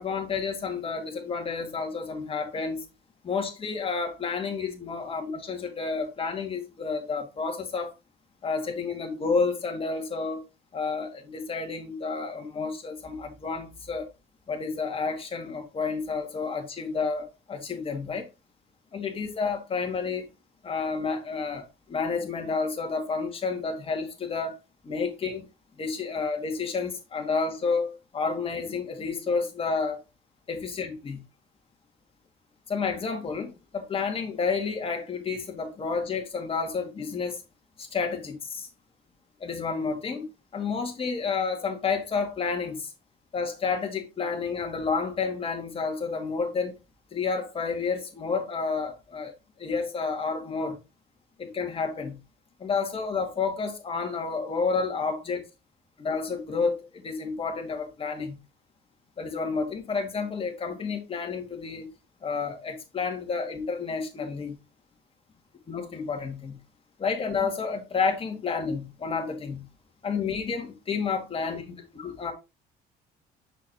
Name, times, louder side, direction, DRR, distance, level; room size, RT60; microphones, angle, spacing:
voice 1, 0.0-2.8 3.2-7.9 8.4-10.4 10.7-14.1 14.5-18.3 18.9-20.3 20.6-24.6 24.8-25.5 25.8-30.0 30.5-30.9 32.7-37.4 37.8-38.7 39.4-40.3 40.5-42.9 43.3-46.7 47.1-49.3 49.6-50.8 51.4-52.2 52.6-55.4 56.0-58.4 59.2-61.9 62.2-64.6 65.7-66.6 67.0-69.7 70.0-71.6 72.0-72.3, left 5 dB, 35° left, 2.0 m, -30 dB
6.4 x 6.2 x 2.8 m
cardioid pair, 110°, 17 cm